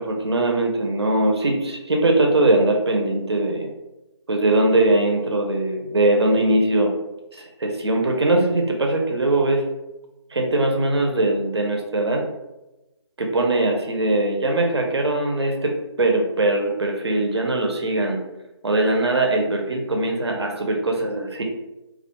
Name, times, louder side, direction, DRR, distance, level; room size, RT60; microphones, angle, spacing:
voice 1, 0.0-3.7 4.3-6.9 7.4-9.7 10.3-12.2 13.2-18.2 18.6-21.4, right 2 dB, 60° right, 1 dB, 0.5 m, -21 dB
2.3 x 2.2 x 2.7 m, 1.0 s
figure-of-eight pair, 170°, 15 cm